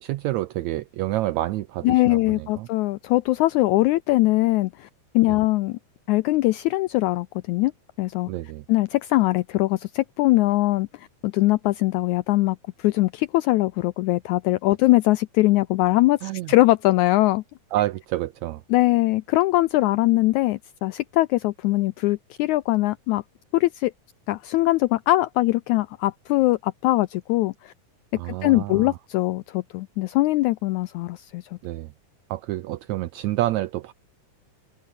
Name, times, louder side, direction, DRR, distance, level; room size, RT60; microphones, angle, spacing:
voice 1, 0.0-2.7 5.3-5.4 8.3-8.6 16.2-16.5 17.7-18.6 28.1-29.0 31.6-31.9 32.3-33.9, right 16 dB, 85° right, 1.6 m, -28 dB
voice 2, 1.8-4.9 5.1-5.8 6.1-7.7 8.0-8.3 8.7-17.4 18.7-23.2 23.5-23.9 24.3-27.7 28.1-31.4, left 18 dB, 85° left, 1.7 m, -21 dB
omnidirectional pair, 3.9 m